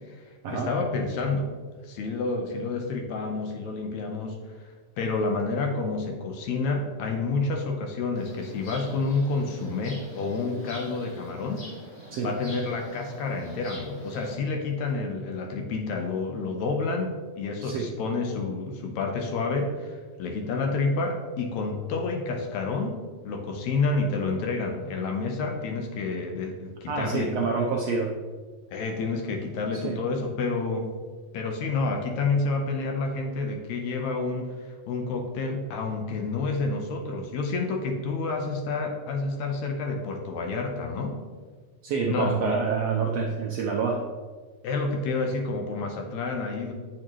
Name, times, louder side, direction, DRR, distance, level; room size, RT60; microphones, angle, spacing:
voice 1, 0.5-1.5 1.8-4.4 5.0-11.7 12.2-23.0 23.2-27.3 28.7-30.9 31.3-34.5 34.9-41.2 42.1-42.6 44.6-46.7, left 3 dB, 75° left, 3 dB, 2.0 m, -29 dB
sound 1, 8.1-14.4, equal, 30° left, 1.7 m, -45 dB
voice 2, 17.6-17.9 26.9-28.1 29.7-30.0 41.8-44.1, right 5 dB, 85° right, 0 dB, 1.4 m, -27 dB
8.8 x 6.4 x 3.0 m, 1.5 s
omnidirectional pair, 3.6 m